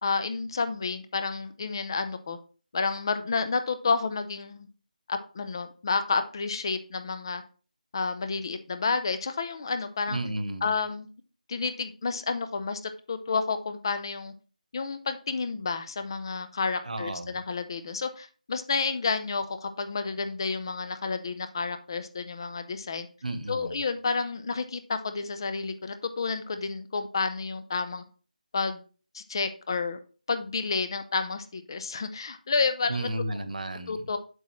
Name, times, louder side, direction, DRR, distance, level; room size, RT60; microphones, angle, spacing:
voice 1, 0.0-2.4 2.7-4.7 5.1-7.4 7.9-10.2 10.6-11.1 11.5-14.3 14.7-23.1 23.5-28.0 28.5-28.8 29.1-30.0 30.3-33.1 33.9-34.2, left 4 dB, 30° left, 10 dB, 0.7 m, -30 dB
voice 2, 10.1-10.7 16.8-17.4 23.2-23.8 32.9-33.9, right 1 dB, 65° right, 11 dB, 1.3 m, -33 dB
8.0 x 7.2 x 3.1 m, 0.37 s
figure-of-eight pair, 170°, 5 cm